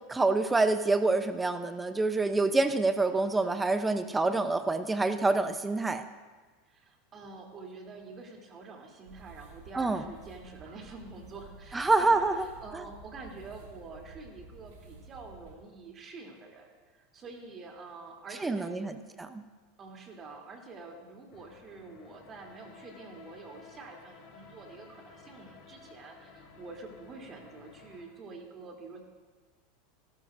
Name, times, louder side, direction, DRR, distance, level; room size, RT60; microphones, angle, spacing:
voice 1, 0.1-6.0 9.7-10.0 11.7-12.5 18.4-18.9 19.2-19.4, right 3 dB, 15° right, 10 dB, 0.7 m, -26 dB
voice 2, 6.7-18.9 19.8-29.0, right 3 dB, 35° right, 1 dB, 3.2 m, -47 dB
sound 1, 9.0-15.6, right 4 dB, 70° right, 2.9 m, -52 dB
sound 2, 21.3-28.0, left 4 dB, 55° left, 2.9 m, -54 dB
26.0 x 13.0 x 2.6 m, 1.4 s
hypercardioid pair, 105°, 0 cm